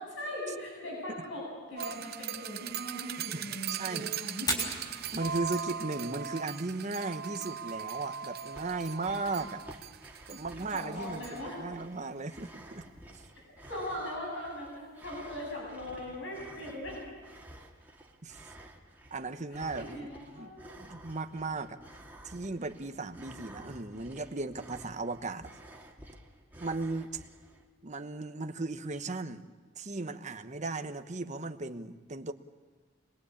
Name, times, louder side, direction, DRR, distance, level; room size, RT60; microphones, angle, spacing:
voice 1, 0.0-4.7 10.3-10.4 10.7-11.6 13.7-17.1 19.5-20.7, left 1 dB, 70° left, -2 dB, 7.9 m, -40 dB
sound 1, 1.8-11.4, right 8 dB, 55° right, 0.7 m, -39 dB
voice 2, 3.7-4.1 5.1-9.6 10.3-12.8 18.2-18.5 19.1-20.5 20.8-21.8 22.2-25.5 26.6-27.2 27.8-29.5 29.8-32.3, right 3 dB, 40° right, 8 dB, 1.1 m, -36 dB
Fire, 4.3-18.2, left 1 dB, 20° left, 5.7 m, -46 dB
sound 2, 8.4-27.7, right 1 dB, 10° right, 2.3 m, -52 dB
27.0 x 21.5 x 8.6 m, 1.3 s
head